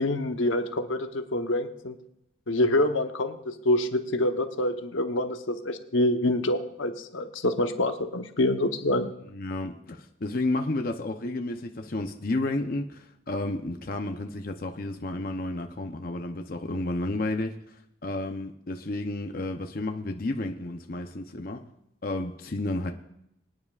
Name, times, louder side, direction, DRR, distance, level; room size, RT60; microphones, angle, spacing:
voice 1, 0.0-1.9 2.5-9.1, left 1 dB, 80° left, 7 dB, 1.0 m, -26 dB
voice 2, 9.3-17.6 18.0-21.6 22.0-22.9, left 2 dB, 45° left, 4 dB, 0.7 m, -31 dB
24.0 x 9.6 x 2.4 m, 0.78 s
head